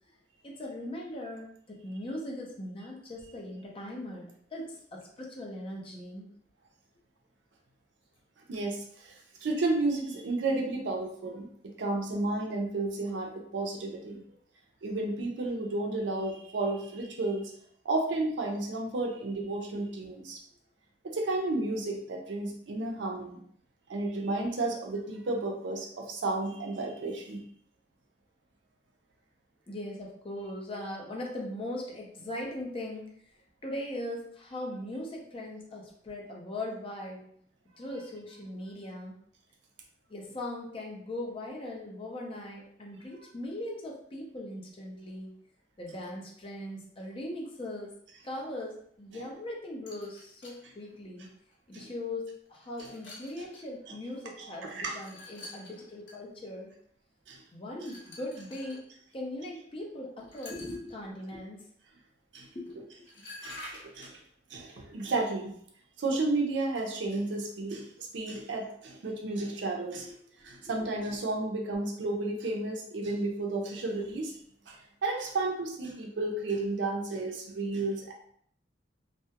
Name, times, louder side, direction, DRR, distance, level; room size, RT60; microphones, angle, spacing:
voice 1, 0.4-6.3 19.1-19.2 29.7-33.1 33.6-37.3 37.8-39.2 40.1-45.4 45.8-47.9 48.2-51.3 51.7-56.7 57.5-58.8 59.1-61.6 62.5-62.8 70.0-70.1 70.5-70.7, left 1 dB, 30° left, -1 dB, 0.5 m, -39 dB
voice 2, 8.5-14.2 14.8-17.5 17.8-20.4 21.0-23.4 23.9-27.4 49.1-49.2 51.7-51.9 53.4-53.5 54.4-55.0 57.3-57.4 62.3-62.5 63.4-63.6 63.9-64.2 64.5-65.5 66.0-70.1 70.4-74.4 74.7-78.1, right 2 dB, 70° right, 1 dB, 0.5 m, -32 dB
sound 1, 49.9-50.6 51.5-51.6 52.4-53.7 54.9-56.2 57.8-58.8 60.2-60.9 62.7-62.8 63.1-64.2, left 1 dB, 75° left, 0.8 m, -48 dB
2.2 x 2.0 x 2.8 m, 0.64 s
head